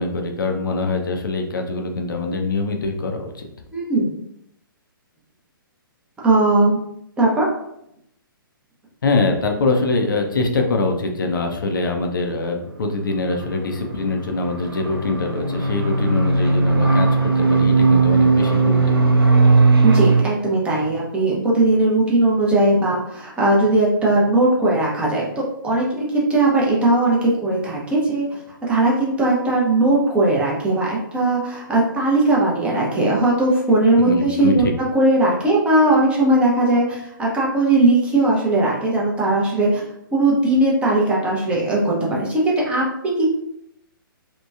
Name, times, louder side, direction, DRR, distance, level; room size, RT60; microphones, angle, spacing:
voice 1, 0.0-3.5 9.0-19.2 34.0-34.5, left 3 dB, 65° left, 3 dB, 0.5 m, -23 dB
voice 2, 3.7-4.2 6.2-6.8 7.2-7.5 19.8-28.4 28.7-34.6 34.9-39.8 40.1-43.3, right 2 dB, 10° right, -4 dB, 0.5 m, -18 dB
sound 1, 13.2-20.2, right 3 dB, 90° right, 0.4 m, -17 dB
2.9 x 2.1 x 2.3 m, 0.77 s
figure-of-eight pair, 125°, 12 cm